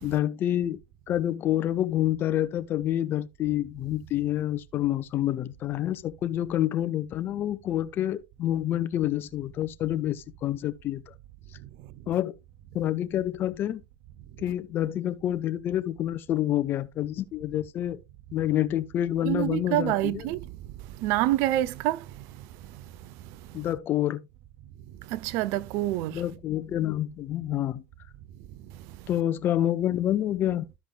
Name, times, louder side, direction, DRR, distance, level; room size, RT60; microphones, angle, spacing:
voice 1, 0.0-0.8 1.1-11.1 12.1-12.3 12.7-13.8 14.4-18.0 18.3-20.3 23.5-24.2 26.1-27.8 29.1-30.6, left 12 dB, 45° left, 0.8 m, -28 dB
voice 2, 19.2-20.4 21.0-22.0 25.1-26.2, right 15 dB, 60° right, 0.6 m, -26 dB
14.5 x 5.2 x 2.3 m
hypercardioid pair, 90°, 5 cm